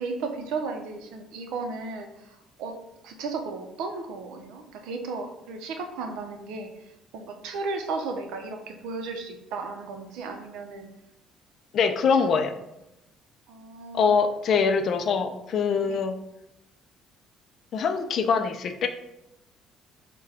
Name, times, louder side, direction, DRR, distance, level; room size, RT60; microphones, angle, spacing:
voice 1, 0.0-2.8 3.0-10.9 11.8-12.3 13.5-14.2 15.8-16.0, right 4 dB, 85° right, 4 dB, 0.6 m, -35 dB
voice 2, 11.7-12.5 13.9-16.1 17.7-18.9, left 5 dB, 40° left, 7 dB, 0.3 m, -23 dB
4.8 x 2.2 x 3.4 m, 0.88 s
cardioid pair, 175°, 0 cm